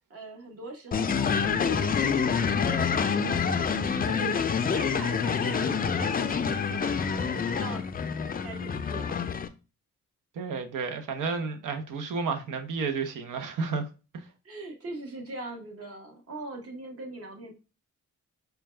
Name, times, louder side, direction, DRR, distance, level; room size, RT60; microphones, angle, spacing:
voice 1, 0.1-4.4 4.7-7.8 8.4-9.2 14.4-17.5, right 2 dB, 50° right, 1.1 m, -41 dB
sound 1, 0.9-9.5, left 6 dB, 30° left, 0.4 m, -27 dB
voice 2, 10.4-13.9 14.1-14.2, right 4 dB, 80° right, 0.7 m, -31 dB
4.5 x 2.2 x 3.2 m
cardioid pair, 80°, 31 cm